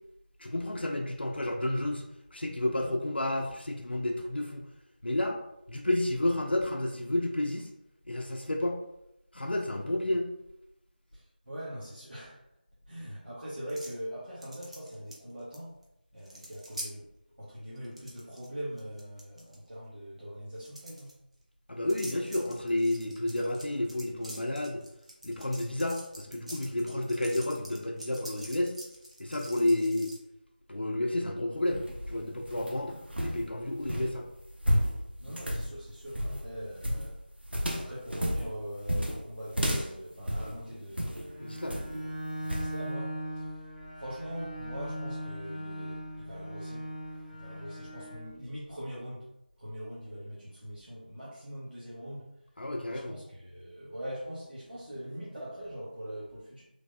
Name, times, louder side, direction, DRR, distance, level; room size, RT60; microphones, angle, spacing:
voice 1, 0.4-2.0 2.3-4.6 5.0-5.4 5.7-7.7 8.1-8.8 9.3-10.3 21.7-24.8 25.2-28.7 29.2-30.1 30.7-34.2 41.4-41.8 52.6-53.1, left 1 dB, 80° left, 2 dB, 0.5 m, -31 dB
voice 2, 11.1-12.4 12.9-15.8 16.1-17.1 17.4-21.2 35.2-37.2 37.5-41.8 42.4-43.6 43.9-46.9 47.3-49.3 49.6-52.3 52.9-56.6, equal, 70° right, -9 dB, 1.0 m, -42 dB
sound 1, 13.7-14.0 14.4-15.6 15.8-15.9 16.2-16.9 17.8-18.5 18.8-19.6 20.6-21.1 21.9-30.2, right 1 dB, 40° right, 0.6 m, -46 dB
sound 2, 31.5-41.3 41.7-42.1 42.5-42.7, equal, 85° right, 0.6 m, -32 dB
Bowed string instrument, 41.3-48.3, equal, 5° left, 0.8 m, -39 dB
3.2 x 2.0 x 2.6 m, 0.85 s
figure-of-eight pair, 170°, 5 cm